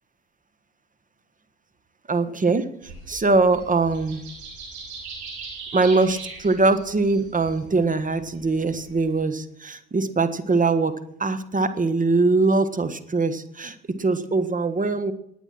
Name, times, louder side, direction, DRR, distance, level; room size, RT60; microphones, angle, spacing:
voice 1, 2.1-2.7 3.1-4.3 5.7-15.1, right 3 dB, 25° right, 10 dB, 1.5 m, -22 dB
sound 1, 2.8-9.2, right 4 dB, 90° right, 5.4 m, -40 dB
19.5 x 8.4 x 6.1 m, 0.75 s
hypercardioid pair, 60°, 32 cm